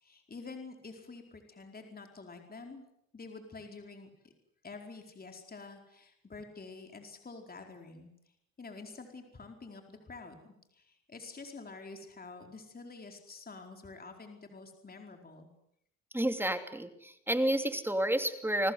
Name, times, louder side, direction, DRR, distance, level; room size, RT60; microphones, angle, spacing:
voice 1, 0.0-2.8 3.1-4.3 4.6-8.1 8.6-15.5, left 3 dB, 30° left, 4 dB, 4.7 m, -48 dB
voice 2, 16.1-18.7, right 1 dB, 5° right, 7 dB, 3.0 m, -30 dB
30.0 x 20.0 x 8.1 m, 0.76 s
cardioid pair, 90°, 30 cm